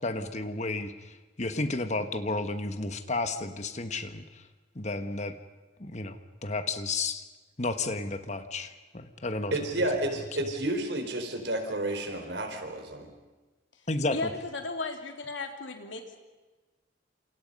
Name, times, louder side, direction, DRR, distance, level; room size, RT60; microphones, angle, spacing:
voice 1, 0.0-4.4 4.7-5.4 5.8-7.2 7.6-9.5 13.9-14.3, left 2 dB, 35° left, 9 dB, 1.5 m, -32 dB
voice 2, 9.5-13.1, right 1 dB, 65° right, 5 dB, 4.3 m, -31 dB
voice 3, 14.1-16.2, left 3 dB, 80° left, 4 dB, 3.3 m, -35 dB
29.0 x 28.0 x 5.5 m, 1.2 s
head